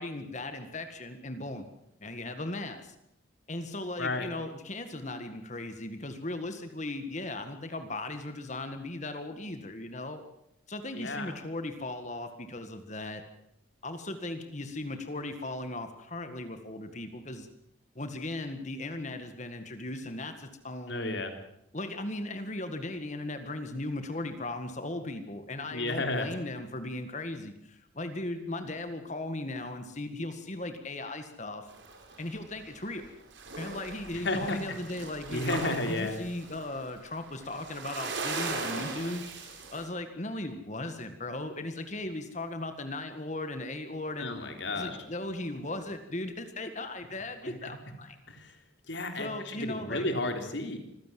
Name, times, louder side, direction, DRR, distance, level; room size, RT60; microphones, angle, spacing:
voice 1, 0.0-1.7 2.0-2.9 3.5-10.2 10.7-13.2 13.8-17.5 18.0-21.2 21.7-31.7 32.2-33.1 33.6-44.3 44.8-48.2 49.2-50.1, left 2 dB, 35° left, 8 dB, 1.8 m, -37 dB
voice 2, 4.0-4.3 10.9-11.4 20.9-21.3 25.7-26.3 34.1-34.6 35.3-36.2 44.2-45.0 48.3-48.5 48.9-50.8, left 2 dB, 65° left, 5 dB, 3.6 m, -32 dB
sound 1, 31.7-33.1 33.3-39.9, right 3 dB, 65° right, 4.7 m, -39 dB
25.5 x 16.0 x 7.7 m, 0.79 s
head